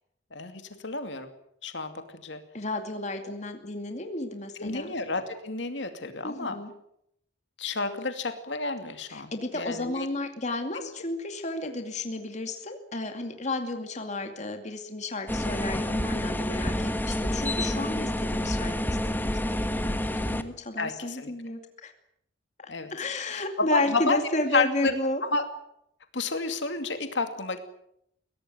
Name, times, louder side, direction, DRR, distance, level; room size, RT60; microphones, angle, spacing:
voice 1, 0.3-1.3 1.6-2.4 4.6-6.6 7.6-10.1 10.7-10.9 20.8-21.3 22.7-22.9 23.3-24.2 24.5-24.9 25.2-25.5 26.1-27.6, left 3 dB, 70° left, 7 dB, 2.6 m, -30 dB
voice 2, 2.5-4.9 6.2-6.7 9.1-21.9 22.6-25.2, left 2 dB, 40° left, 5 dB, 2.5 m, -33 dB
sound 1, 15.3-20.4, left 1 dB, 10° left, 1.4 m, -28 dB
22.5 x 17.5 x 9.3 m, 0.76 s
head